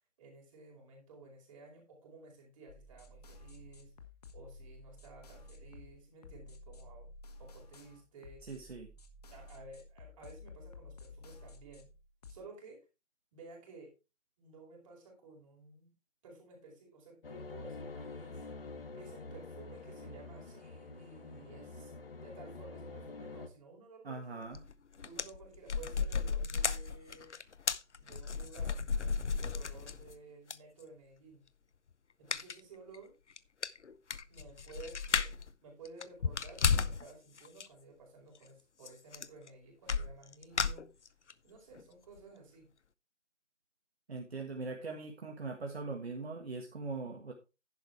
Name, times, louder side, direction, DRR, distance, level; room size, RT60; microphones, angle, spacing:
voice 1, 0.2-3.9 4.3-7.1 7.4-8.4 9.3-11.9 12.3-12.8 13.3-13.9 14.4-15.9 16.2-18.5 19.0-21.9 22.2-24.5 25.0-27.3 28.0-31.4 32.2-33.1 34.3-40.9 41.4-42.7, right 3 dB, 25° right, -1 dB, 4.8 m, -54 dB
sound 1, 2.7-12.4, left 2 dB, 30° left, 1.2 m, -53 dB
voice 2, 8.4-8.9 24.0-24.6 44.1-47.3, right 3 dB, 55° right, 2 dB, 1.7 m, -41 dB
sound 2, 17.2-23.5, left 3 dB, 50° left, 1.3 m, -47 dB
sound 3, 24.5-24.7 25.0-30.1 30.5-30.6 32.3-32.6 32.9-33.0 33.4-33.5 33.6-35.5 35.9-37.0 37.4-37.7 38.9-39.0 39.1-39.5 39.9-41.3 41.8-41.9 42.2-42.3, left 5 dB, 70° left, 0.7 m, -33 dB
11.0 x 9.1 x 3.4 m, 0.28 s
figure-of-eight pair, 150°, 37 cm